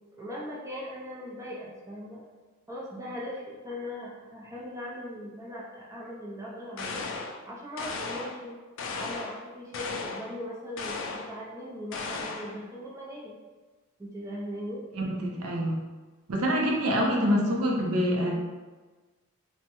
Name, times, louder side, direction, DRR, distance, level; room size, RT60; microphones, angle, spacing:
voice 1, 0.2-2.2 2.7-7.0 7.4-8.6 8.9-13.4 14.0-14.8, equal, 15° right, -4 dB, 0.4 m, -39 dB
sound 1, 6.8-7.4 7.8-8.4 8.8-9.4 9.7-10.3 10.8-11.3 11.9-12.6, left 4 dB, 60° left, 0.4 m, -35 dB
voice 2, 14.9-15.8 16.3-18.3, equal, 85° right, 0 dB, 0.6 m, -26 dB
3.4 x 2.1 x 2.9 m, 1.3 s
head